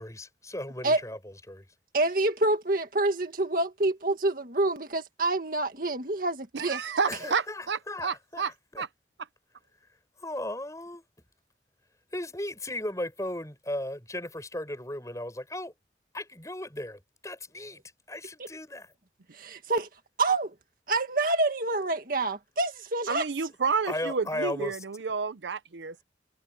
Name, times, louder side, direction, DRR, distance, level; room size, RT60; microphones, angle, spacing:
voice 1, 0.0-1.6 7.1-8.8 10.2-11.0 12.1-15.7 16.1-17.8 18.1-18.9 23.9-24.8, left 1 dB, 15° left, 7.0 m, -36 dB
voice 2, 1.9-6.8 19.3-19.9 20.2-20.5 20.9-23.3, right 2 dB, 50° right, 1.9 m, -27 dB
voice 3, 6.5-8.5 8.8-8.9 23.1-26.0, right 5 dB, 80° right, 0.7 m, -30 dB
head